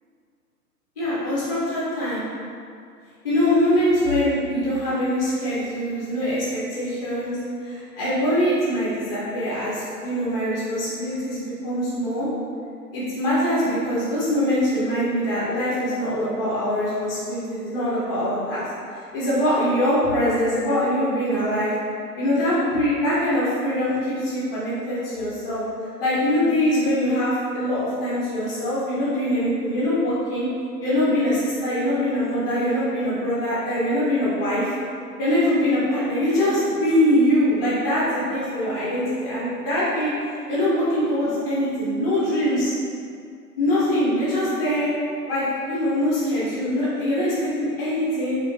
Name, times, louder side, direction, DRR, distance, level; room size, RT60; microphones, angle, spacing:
voice 1, 1.0-2.2 3.2-7.4 7.6-12.3 12.9-18.6 19.1-21.7 22.2-25.6 26.0-30.5 30.8-34.7 35.2-40.1 40.5-42.7 43.6-44.9 45.3-48.4, equal, 10° left, -11 dB, 0.6 m, -23 dB
5.0 x 2.4 x 3.3 m, 2.3 s
figure-of-eight pair, 130°, 49 cm